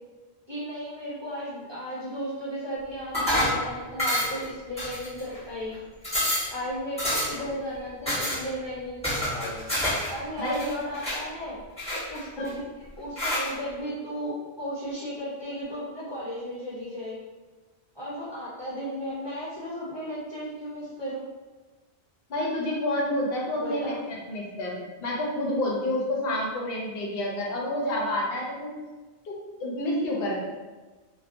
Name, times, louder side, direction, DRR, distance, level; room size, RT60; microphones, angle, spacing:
voice 1, 0.5-5.8 6.5-9.7 10.1-11.6 11.9-12.6 13.0-17.2 17.9-21.3 23.6-24.0, equal, 30° right, -9 dB, 0.6 m, -35 dB
sound 1, 3.1-3.6 4.0-4.4 4.8-5.4 5.7-5.8 6.0-6.5 7.0-7.5 8.1-8.4 9.0-10.1 10.4-11.2 11.8-12.5 13.2-13.5, left 1 dB, 5° left, 1.3 m, -27 dB
voice 2, 22.3-28.7 29.2-30.4, left 1 dB, 65° left, -3 dB, 0.9 m, -29 dB
2.6 x 2.3 x 2.5 m, 1.3 s
omnidirectional pair, 1.1 m